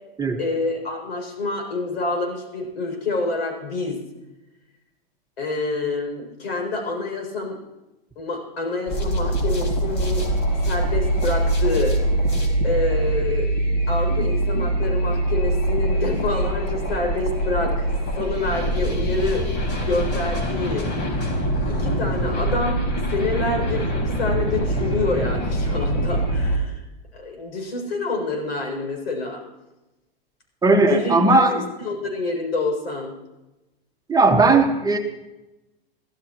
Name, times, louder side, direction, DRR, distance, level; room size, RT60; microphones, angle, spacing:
voice 1, 0.4-4.0 5.4-7.6 8.2-10.3 10.6-11.9 12.6-13.5 13.9-17.9 18.2-19.5 19.8-20.9 21.7-22.8 23.1-26.8 27.1-29.4 30.8-33.1, left 2 dB, 80° left, 2 dB, 7.2 m, -27 dB
sound 1, 8.9-26.6, right 1 dB, 35° left, 4.4 m, -23 dB
voice 2, 30.6-31.6 34.1-35.0, right 3 dB, 10° right, 3 dB, 1.7 m, -17 dB
24.5 x 15.0 x 3.2 m, 1.0 s
hypercardioid pair, 110°, 30 cm